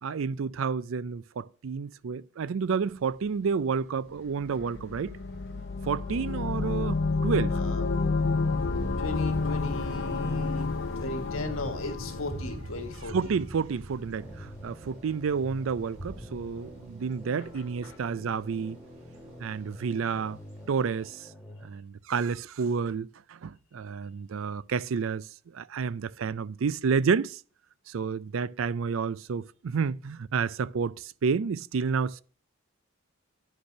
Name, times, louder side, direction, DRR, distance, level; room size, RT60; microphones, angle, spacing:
voice 1, 0.0-5.2 5.8-7.6 13.0-18.8 19.4-20.4 20.7-21.3 21.6-25.3 25.5-27.4 27.9-32.2, right 5 dB, 65° right, 0.4 m, -30 dB
Thunder / Bicycle, 2.6-21.0, right 1 dB, 35° right, 3.3 m, -47 dB
sound 1, 4.4-13.3, left 3 dB, 55° left, 0.7 m, -30 dB
voice 2, 7.5-8.0 9.0-10.7 11.0-13.4 17.5-18.0, left 2 dB, 75° left, 1.6 m, -37 dB
sound 2, 14.2-21.7, equal, 5° right, 1.9 m, -48 dB
10.0 x 5.3 x 6.6 m
head